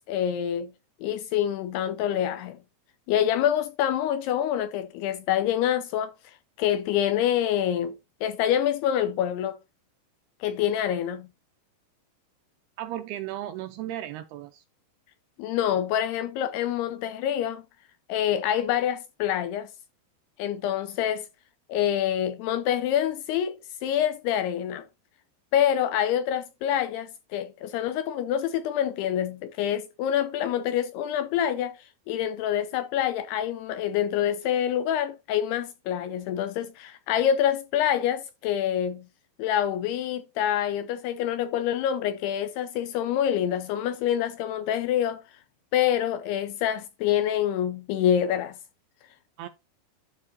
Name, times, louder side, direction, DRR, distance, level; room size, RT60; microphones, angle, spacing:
voice 1, 0.1-0.7 1.0-2.6 3.1-8.0 8.2-9.6 10.4-11.3 15.4-17.6 18.1-19.7 20.4-21.3 21.7-24.8 25.5-39.1 39.4-45.2 45.7-48.6, left 10 dB, 80° left, 2.4 m, -26 dB
voice 2, 12.8-14.6 49.4-49.5, right 13 dB, 85° right, 2.4 m, -35 dB
12.0 x 4.6 x 2.7 m
omnidirectional pair, 5.1 m